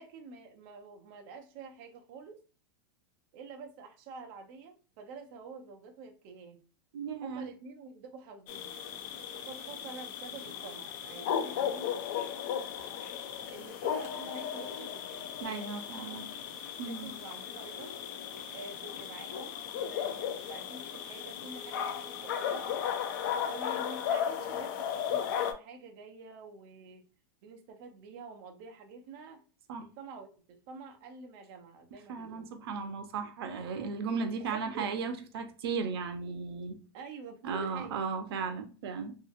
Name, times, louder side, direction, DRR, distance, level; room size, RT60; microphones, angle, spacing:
voice 1, 0.0-2.4 3.3-6.6 7.2-8.8 9.3-12.0 13.5-15.7 15.9-16.4 16.8-18.0 18.5-22.7 23.4-27.0 27.4-29.4 30.0-32.5 34.4-34.9 36.9-38.0, right 4 dB, 40° right, 0.5 m, -48 dB
voice 2, 6.9-7.5 15.4-16.3 16.8-17.1 29.7-29.9 32.1-36.8 37.4-39.2, right 5 dB, 90° right, 0.6 m, -36 dB
sound 1, 8.5-25.5, left 8 dB, 55° left, 0.4 m, -36 dB
2.8 x 2.4 x 2.5 m
supercardioid pair, 170°, 12 cm